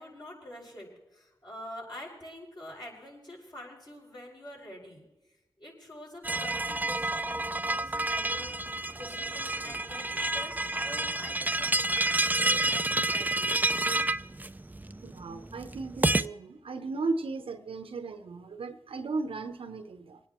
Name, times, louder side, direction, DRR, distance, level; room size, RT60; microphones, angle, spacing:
voice 1, 0.0-5.0 5.6-13.6, left 1 dB, 50° left, -3 dB, 5.8 m, -46 dB
sound 1, 6.2-16.3, right 2 dB, 20° right, 0.5 m, -29 dB
voice 2, 15.0-20.2, right 3 dB, 85° right, 9 dB, 0.9 m, -36 dB
28.0 x 9.5 x 3.1 m, 1.0 s
cardioid pair, 50°, 9 cm